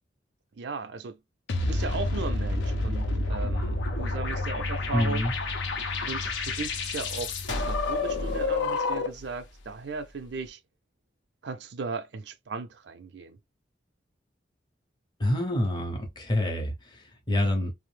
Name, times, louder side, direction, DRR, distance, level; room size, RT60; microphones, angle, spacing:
voice 1, 0.6-1.2 1.6-5.3 6.0-10.6 11.4-13.4, right 4 dB, 65° right, 0.4 m, -37 dB
sound 1, 1.5-9.3, left 2 dB, 80° left, 0.6 m, -29 dB
voice 2, 4.9-5.3 15.2-17.7, left 1 dB, 25° left, 0.7 m, -27 dB
2.5 x 2.0 x 3.2 m
head